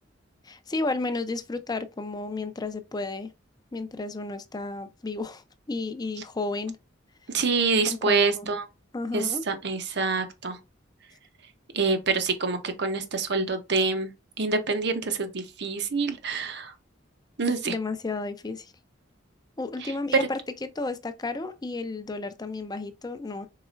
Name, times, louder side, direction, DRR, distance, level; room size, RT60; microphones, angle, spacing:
voice 1, 0.4-3.3 3.7-5.4 5.7-6.8 7.9-8.5 8.9-9.4 17.6-18.7 19.6-23.5, left 3 dB, 20° left, 0.5 m, -32 dB
voice 2, 7.3-8.6 9.1-10.6 11.7-14.1 14.4-16.7 17.4-17.7, right 4 dB, 60° right, 0.9 m, -26 dB
4.8 x 4.0 x 2.5 m
head